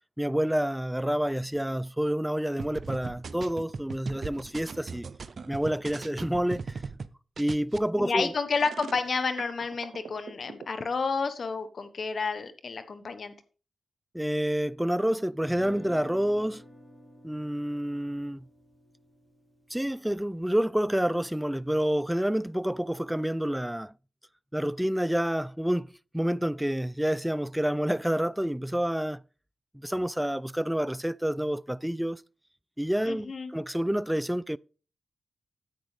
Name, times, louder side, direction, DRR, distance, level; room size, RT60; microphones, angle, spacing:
voice 1, 0.2-5.0 5.5-6.8 7.4-8.3 14.1-16.6 17.2-18.4 19.7-23.9 24.5-25.9 26.1-29.2 29.7-32.2 32.8-34.6, equal, 5° right, 0.3 m, -28 dB
sound 1, 2.6-7.1 7.4-7.8, right 4 dB, 60° right, 0.6 m, -38 dB
voice 2, 8.0-13.3 33.0-33.5, left 4 dB, 60° left, 1.2 m, -30 dB
sound 2, 8.5-10.7, right 6 dB, 80° right, 0.9 m, -43 dB
Guitar, 15.4-21.5, left 1 dB, 10° left, 4.0 m, -51 dB
10.5 x 8.6 x 3.4 m
cardioid pair, 50°, 0 cm